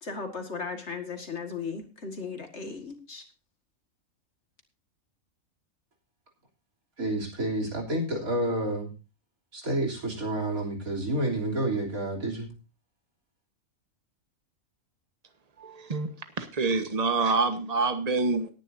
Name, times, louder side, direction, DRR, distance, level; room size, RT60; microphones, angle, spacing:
voice 1, 0.0-3.2, left 5 dB, 55° left, 2.3 m, -36 dB
voice 2, 7.0-8.9 9.5-12.5, right 1 dB, 85° right, 3.9 m, -29 dB
voice 3, 15.6-16.1 16.4-18.5, right 3 dB, 30° right, 1.4 m, -26 dB
18.5 x 10.5 x 2.7 m
omnidirectional pair, 1.5 m